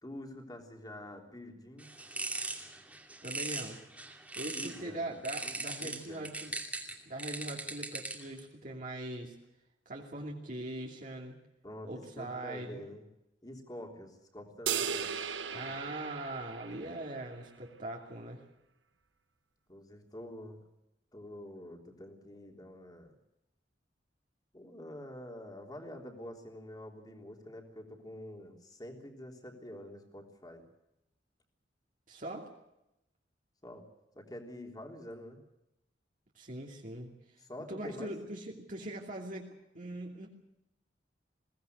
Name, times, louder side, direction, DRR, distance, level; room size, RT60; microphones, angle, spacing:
voice 1, 0.0-1.9 4.5-5.1 5.4-6.3 11.6-11.9 12.2-13.0 13.4-15.2 15.5-15.9 19.7-20.6 21.1-23.2 24.5-30.7 33.6-33.8 34.1-35.4 37.4-38.1, left 1 dB, 20° left, 3 dB, 3.6 m, -47 dB
sound 1, 1.8-4.8 5.2-8.4, right 2 dB, 10° right, 2.5 m, -40 dB
voice 2, 3.2-6.5 7.1-9.4 9.9-11.4 11.8-12.8 15.5-18.4 32.1-32.5 36.3-37.1 37.7-40.3, right 1 dB, 45° right, -1 dB, 2.8 m, -41 dB
sound 2, 14.7-17.2, right 7 dB, 85° right, 1.4 m, -36 dB
22.0 x 17.5 x 8.1 m, 0.88 s
head